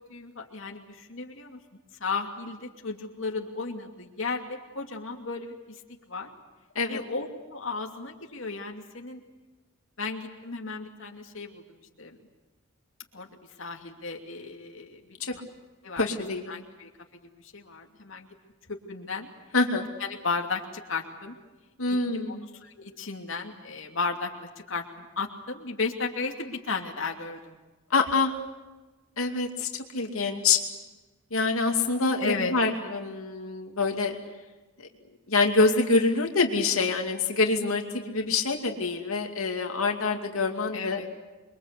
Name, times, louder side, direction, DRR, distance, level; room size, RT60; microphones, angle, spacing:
voice 1, 0.1-1.6 2.0-5.8 6.1-6.3 6.9-9.2 10.0-12.2 13.1-13.3 13.6-15.4 15.8-16.9 17.2-18.3 18.7-19.3 20.0-21.3 21.9-27.6 32.2-32.5 40.7-41.1, left 4 dB, 65° left, 1 dB, 2.7 m, -35 dB
voice 2, 16.0-16.6 19.5-19.8 21.8-22.5 27.9-28.3 29.2-29.7 29.9-30.6 31.3-34.1 35.3-41.0, left 3 dB, 85° left, 3 dB, 2.6 m, -25 dB
28.5 x 23.0 x 8.3 m, 1.2 s
head